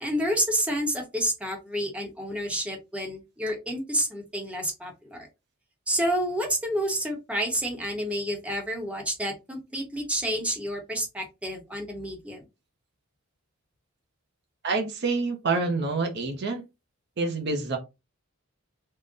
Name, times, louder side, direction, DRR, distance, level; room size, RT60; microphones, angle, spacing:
voice 1, 0.0-5.3 5.9-12.4, equal, 5° right, 0.8 m, -29 dB
voice 2, 14.6-16.6 17.2-17.8, right 3 dB, 50° right, 0.6 m, -27 dB
3.7 x 2.1 x 3.7 m
head